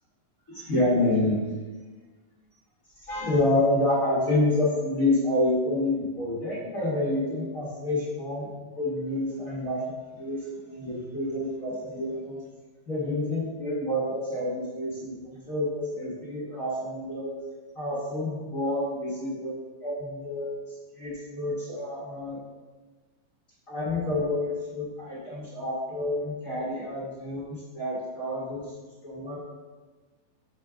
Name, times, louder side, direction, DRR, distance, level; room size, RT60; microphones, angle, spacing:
voice 1, 0.5-1.4 3.1-8.5 8.8-12.4 12.9-17.3 17.7-19.5 19.8-22.4 23.7-28.7 29.0-29.5, left 1 dB, 45° left, -9 dB, 1.0 m, -28 dB
6.1 x 4.4 x 5.0 m, 1.3 s
omnidirectional pair, 4.1 m